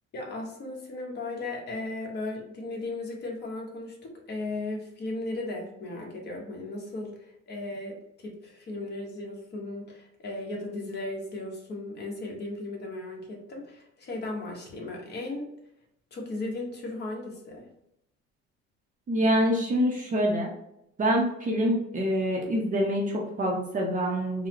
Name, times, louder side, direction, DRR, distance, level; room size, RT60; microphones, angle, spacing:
voice 1, 0.1-7.1 7.5-15.5 16.1-17.7, left 2 dB, 35° left, -1 dB, 1.0 m, -36 dB
voice 2, 19.1-20.5 21.0-24.5, equal, 30° right, -1 dB, 0.6 m, -26 dB
3.8 x 2.0 x 3.0 m, 0.80 s
cardioid pair, 125°, 29 cm